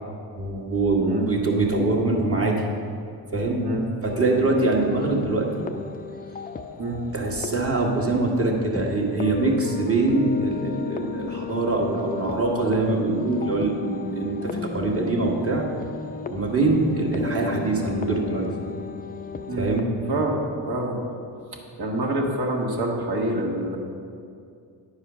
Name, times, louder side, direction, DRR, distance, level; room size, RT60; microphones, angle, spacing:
voice 1, 0.4-2.6 3.3-3.6 4.0-5.7 7.1-15.7 16.3-18.5 19.6-19.9, right 2 dB, 30° right, -1 dB, 1.6 m, -23 dB
voice 2, 1.0-1.3 3.6-3.9 6.8-7.0 19.5-20.4 20.7-21.1 21.5-23.8, right 1 dB, 60° right, 0 dB, 1.7 m, -27 dB
sound 1, 4.0-19.8, left 5 dB, 20° left, 0.5 m, -34 dB
10.0 x 4.9 x 6.1 m, 2.4 s
cardioid pair, 90°, 43 cm